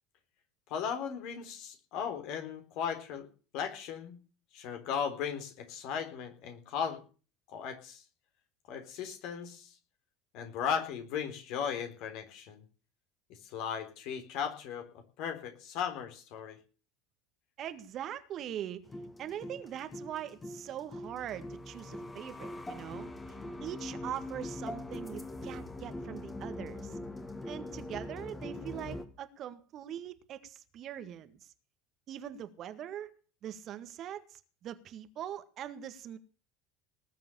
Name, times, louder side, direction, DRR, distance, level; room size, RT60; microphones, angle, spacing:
voice 1, 0.7-3.3 3.5-4.2 4.5-7.0 7.5-8.0 8.7-9.8 10.3-12.6 13.4-14.9 15.2-16.6, left 7 dB, 55° left, 3.9 m, -36 dB
voice 2, 17.6-18.8 19.2-27.0 27.4-31.5 32.1-33.1 33.4-36.2, right 10 dB, 45° right, 1.7 m, -42 dB
sound 1, 18.8-29.0, left 1 dB, 15° left, 2.5 m, -42 dB
19.5 x 7.7 x 7.0 m
figure-of-eight pair, 70°, 0 cm